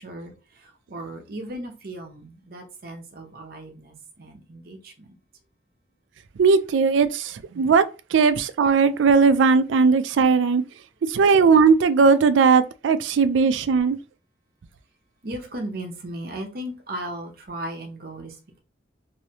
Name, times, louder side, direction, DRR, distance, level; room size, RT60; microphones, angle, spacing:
voice 1, 0.0-5.2 15.2-18.6, right 1 dB, 55° right, 0.8 m, -36 dB
voice 2, 6.4-7.8 8.1-10.6 11.1-14.0, right 5 dB, 85° right, 0.3 m, -18 dB
3.2 x 2.7 x 2.8 m
head